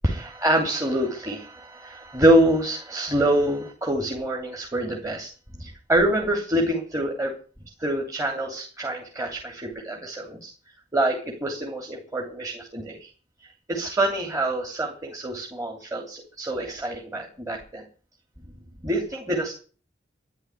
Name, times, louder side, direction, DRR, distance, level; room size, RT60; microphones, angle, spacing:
voice 1, 0.0-5.3 5.6-7.3 7.8-10.5 10.9-13.1 13.7-17.8 18.8-19.5, right 1 dB, 20° right, 1 dB, 3.1 m, -25 dB
13.0 x 10.5 x 9.7 m, 0.40 s
head